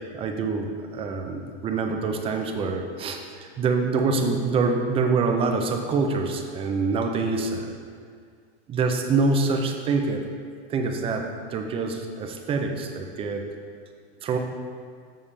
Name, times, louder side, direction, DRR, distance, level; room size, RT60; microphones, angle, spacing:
voice 1, 0.1-7.6 8.7-10.2 10.7-11.2 11.5-13.4 14.2-14.4, right 4 dB, 20° right, 4 dB, 0.4 m, -25 dB
7.2 x 6.9 x 3.3 m, 2.1 s
supercardioid pair, 150°, 31 cm